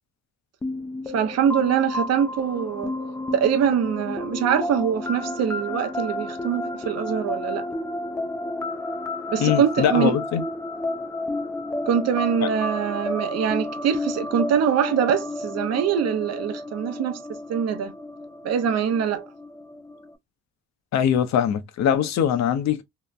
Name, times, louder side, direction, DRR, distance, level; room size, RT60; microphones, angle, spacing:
sound 1, 0.6-20.1, left 2 dB, 10° left, 0.3 m, -31 dB
voice 1, 1.1-2.9 3.3-7.6 9.3-10.2 11.9-17.9 18.4-19.3, right 8 dB, 60° right, 0.6 m, -23 dB
voice 2, 9.4-10.4 20.9-22.8, left 9 dB, 65° left, 0.6 m, -22 dB
2.8 x 2.0 x 2.3 m
cardioid pair, 90°, 30 cm